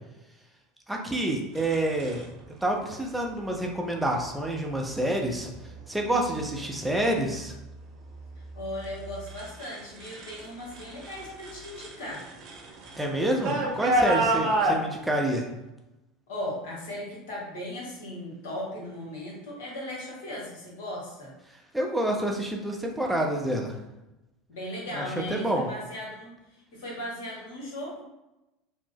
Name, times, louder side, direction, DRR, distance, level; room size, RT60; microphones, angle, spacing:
voice 1, 0.9-2.2 2.6-5.5 5.9-7.5 13.0-15.5 21.7-23.8 24.9-25.0 25.3-25.7, right 1 dB, 5° right, 0 dB, 0.5 m, -28 dB
sound 1, 1.6-2.2 3.4-3.7 4.3-4.7 5.3-5.8 6.2-10.5 10.7-14.8, right 1 dB, 45° right, 0.7 m, -30 dB
voice 2, 8.5-12.3 16.3-21.3 24.5-26.4 26.7-28.0, left 1 dB, 65° left, -3 dB, 1.1 m, -37 dB
3.0 x 2.0 x 3.3 m, 0.95 s
figure-of-eight pair, 75°, 0 cm